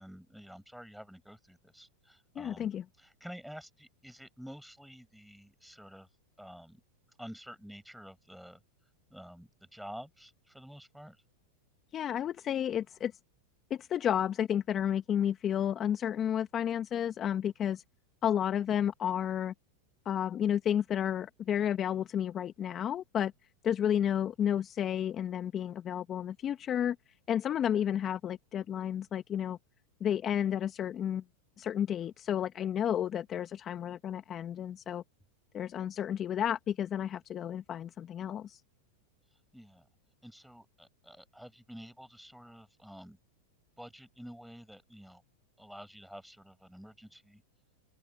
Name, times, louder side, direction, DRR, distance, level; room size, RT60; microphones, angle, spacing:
voice 1, 0.0-2.7 3.0-6.1 6.4-6.8 7.2-8.6 9.1-11.2 39.5-39.9 40.2-43.2 43.8-45.2 45.6-47.4, equal, ahead, 6.4 m, -49 dB
voice 2, 2.3-2.8 11.9-13.1 13.7-17.8 18.2-19.5 20.0-23.3 23.6-27.0 27.3-29.6 30.0-31.2 31.6-35.0 35.5-38.6, left 9 dB, 30° left, 1.3 m, -31 dB
open air
hypercardioid pair, 105°, 0 cm